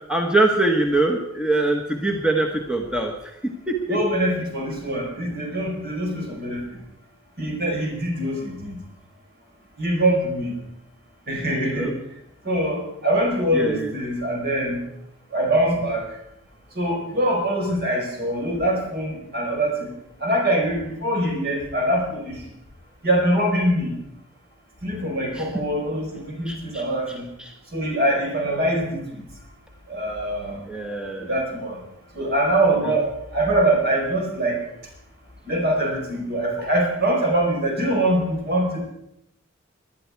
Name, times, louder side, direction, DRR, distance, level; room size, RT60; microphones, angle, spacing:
voice 1, 0.1-3.1 3.4-4.0 11.7-11.9 13.5-13.9 25.3-25.6 26.5-26.9 27.4-27.5 30.7-31.3 32.9-33.0, right 2 dB, 5° right, 2 dB, 1.2 m, -23 dB
voice 2, 3.9-6.8 7.4-8.8 9.8-10.6 11.3-11.9 12.4-14.8 15.3-16.1 16.7-19.9 20.2-22.4 23.0-23.9 24.8-27.3 27.7-29.2 29.9-30.6 31.2-31.8 32.1-34.6 35.4-38.8, right 1 dB, 50° right, 0 dB, 5.0 m, -23 dB
19.0 x 11.5 x 4.7 m, 0.80 s
head